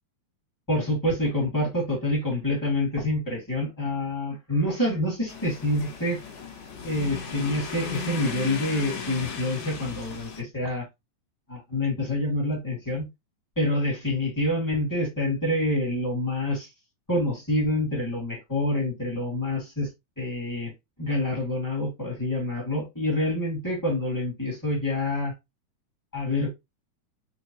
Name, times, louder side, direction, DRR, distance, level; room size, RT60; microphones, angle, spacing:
voice 1, 0.7-6.2 6.8-10.8 11.5-13.1 13.5-16.7 17.1-19.9 20.2-20.7 21.0-25.3 26.1-26.5, left 1 dB, 10° left, -3 dB, 1.0 m, -27 dB
sound 1, 5.3-10.4, left 6 dB, 65° left, 2.2 m, -36 dB
6.3 x 2.3 x 2.9 m, 0.21 s
omnidirectional pair, 4.3 m